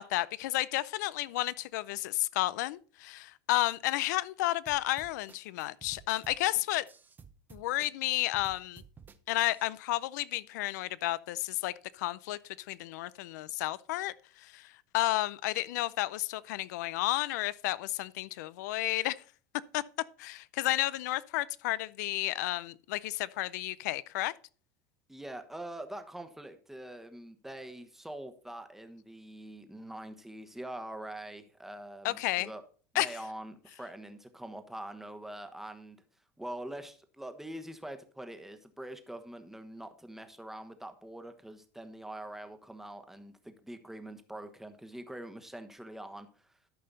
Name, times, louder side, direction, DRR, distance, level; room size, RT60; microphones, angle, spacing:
voice 1, 0.0-6.8 7.5-8.8 9.3-12.4 12.7-14.1 14.4-14.7 14.9-19.2 19.7-19.8 20.2-24.3 32.0-32.5 33.0-33.1, left 17 dB, 90° left, 0.5 m, -32 dB
sound 1, 4.7-9.7, right 6 dB, 20° right, 0.7 m, -54 dB
voice 2, 25.1-32.6 32.9-36.0 36.4-46.6, right 1 dB, 5° right, 1.1 m, -44 dB
12.5 x 5.6 x 4.0 m
supercardioid pair, 135°, 9 cm